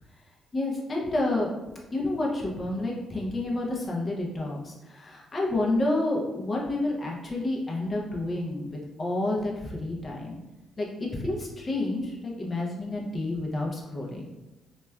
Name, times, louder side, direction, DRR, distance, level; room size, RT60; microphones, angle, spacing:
voice 1, 0.5-1.5 1.9-8.7 9.0-10.4 10.8-10.9 11.2-14.2, left 2 dB, 30° left, -3 dB, 0.5 m, -29 dB
3.0 x 2.2 x 2.2 m, 1.0 s
cardioid pair, 90°, 0 cm